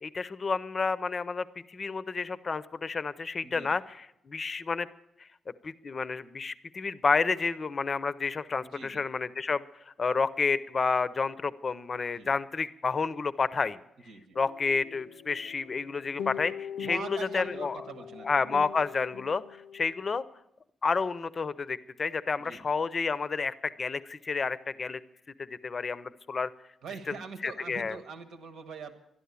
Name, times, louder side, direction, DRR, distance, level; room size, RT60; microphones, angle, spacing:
voice 1, 0.0-3.8 4.3-4.9 5.2-5.3 5.6-9.6 10.0-13.8 14.4-17.8 18.2-19.4 19.7-20.2 20.8-25.0 25.4-26.5 27.4-27.9, left 4 dB, 30° left, 16 dB, 0.5 m, -30 dB
voice 2, 3.4-3.8 8.6-9.1 12.1-12.3 14.0-14.4 16.8-18.6 22.4-22.6 26.8-28.9, right 5 dB, 90° right, 8 dB, 1.3 m, -43 dB
sound 1, 14.3-20.1, left 8 dB, 85° left, 0.5 m, -42 dB
12.5 x 11.5 x 8.2 m, 0.79 s
wide cardioid pair, 170°, 0 cm